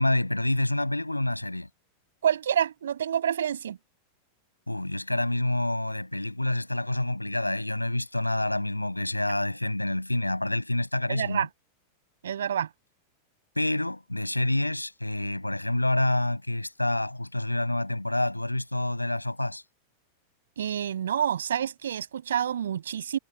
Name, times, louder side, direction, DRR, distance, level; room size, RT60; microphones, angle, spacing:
voice 1, 0.0-1.7 4.7-11.5 13.6-19.6, left 1 dB, 85° left, 7.4 m, -27 dB
voice 2, 2.2-3.8 11.1-11.5 12.2-12.7 20.6-23.2, right 9 dB, 65° right, 7.3 m, -28 dB
figure-of-eight pair, 90°, 0 cm